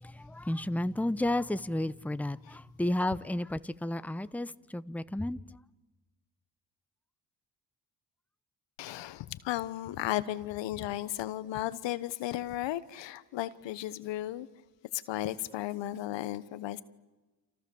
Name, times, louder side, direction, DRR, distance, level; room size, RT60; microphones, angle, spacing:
voice 1, 0.0-5.4, left 1 dB, 5° left, 1.0 m, -32 dB
voice 2, 8.8-14.5 14.9-16.8, left 14 dB, 75° left, 1.3 m, -35 dB
29.5 x 27.5 x 7.1 m
supercardioid pair, 55°, 44 cm